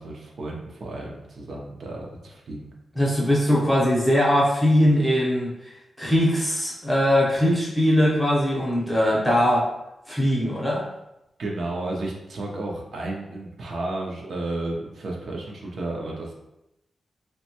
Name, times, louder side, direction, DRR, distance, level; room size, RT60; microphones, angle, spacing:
voice 1, 0.0-2.7 11.4-16.3, right 2 dB, 60° right, -1 dB, 0.5 m, -32 dB
voice 2, 3.0-5.7 6.0-9.7 10.1-10.9, equal, 5° left, -5 dB, 0.7 m, -21 dB
3.1 x 2.1 x 2.8 m, 0.87 s
wide cardioid pair, 170°, 0 cm